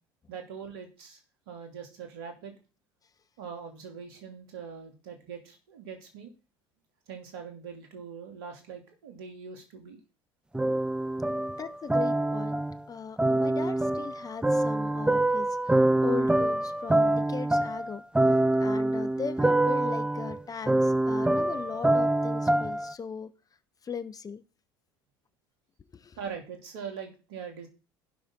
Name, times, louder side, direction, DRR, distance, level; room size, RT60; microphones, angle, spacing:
voice 1, 0.3-1.2 1.5-2.6 3.4-6.3 7.1-10.0 26.2-27.7, right 6 dB, 75° right, 2.9 m, -42 dB
sound 1, 10.5-12.8 13.2-22.9, right 1 dB, 5° right, 0.6 m, -25 dB
voice 2, 11.6-12.6 12.9-18.0 18.6-23.3 23.8-24.4 25.9-26.2, left 6 dB, 30° left, 0.9 m, -38 dB
15.5 x 6.1 x 3.8 m
hypercardioid pair, 70°, 13 cm